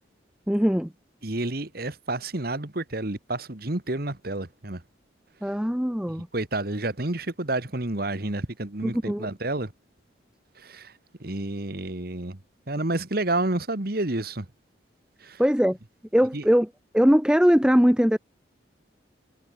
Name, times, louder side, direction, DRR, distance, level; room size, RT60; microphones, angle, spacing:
voice 1, 0.5-0.9 5.4-6.3 8.8-9.3 15.4-15.8 16.1-16.7 16.9-18.2, equal, 5° right, 0.8 m, -21 dB
voice 2, 1.2-4.8 6.3-9.7 10.6-10.9 11.2-12.4 12.7-14.5 15.2-15.4 16.3-16.4, right 2 dB, 50° right, 1.7 m, -29 dB
head